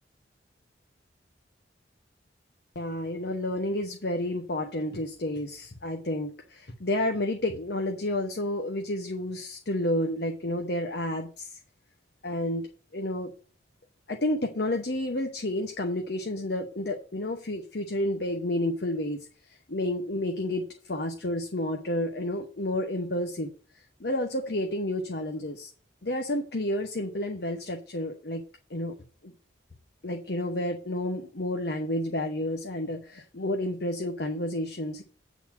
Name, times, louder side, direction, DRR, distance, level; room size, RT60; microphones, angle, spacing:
voice 1, 2.7-11.6 12.2-12.7 12.9-13.3 14.1-19.2 19.7-23.5 24.0-25.7 26.0-28.4 28.7-28.9 29.2-29.3 30.0-35.0, left 1 dB, 55° left, 3 dB, 1.0 m, -30 dB
8.9 x 4.1 x 7.1 m, 0.40 s
head